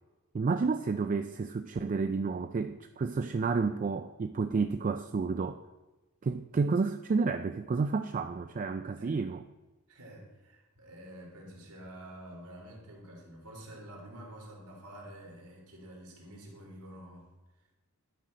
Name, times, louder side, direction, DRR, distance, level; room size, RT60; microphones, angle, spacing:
voice 1, 0.3-5.6 6.2-9.4, right 4 dB, 35° right, 8 dB, 0.3 m, -30 dB
voice 2, 9.9-17.3, right 1 dB, 90° right, -1 dB, 2.7 m, -48 dB
11.0 x 4.2 x 6.4 m, 1.1 s
head